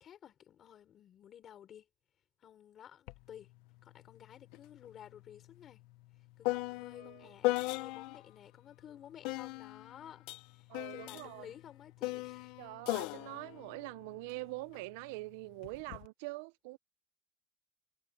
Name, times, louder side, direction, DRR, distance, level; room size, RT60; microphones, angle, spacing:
voice 1, 0.0-1.9 2.4-3.5 3.8-5.8 6.4-10.3 10.5-12.5, left 10 dB, 35° left, 5.1 m, -54 dB
sound 1, 3.1-3.2 3.6-8.3 9.2-14.8 15.6-16.1, left 20 dB, 65° left, 0.8 m, -39 dB
voice 2, 6.9-7.3 10.7-11.5 12.6-16.8, right 23 dB, 80° right, 0.5 m, -44 dB
cardioid pair, 145°, 0 cm